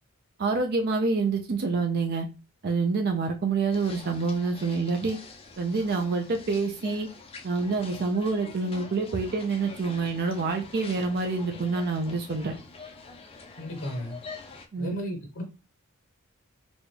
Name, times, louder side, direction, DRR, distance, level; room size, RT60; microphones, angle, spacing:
voice 1, 0.4-2.3 2.6-5.2 5.6-7.1 7.4-12.6 14.7-14.9, right 4 dB, 50° right, 4 dB, 0.4 m, -27 dB
sound 1, 3.7-14.6, left 4 dB, 25° left, 0.5 m, -45 dB
voice 2, 13.6-14.2 14.8-15.4, equal, 55° left, 2 dB, 0.9 m, -34 dB
4.1 x 2.3 x 3.3 m, 0.30 s
head